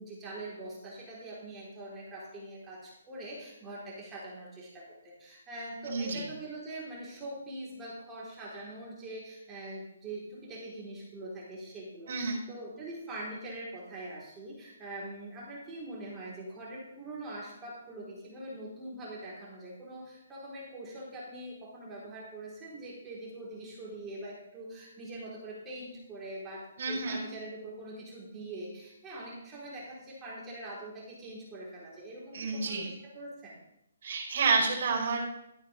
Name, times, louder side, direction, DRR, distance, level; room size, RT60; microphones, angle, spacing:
voice 1, 0.0-33.6, right 1 dB, 15° right, -6 dB, 3.9 m, -43 dB
voice 2, 5.8-6.2 12.1-12.4 26.8-27.2 32.3-32.9 34.0-35.2, right 4 dB, 50° right, 0 dB, 4.7 m, -29 dB
13.0 x 10.0 x 3.5 m, 0.82 s
figure-of-eight pair, 135°, 0 cm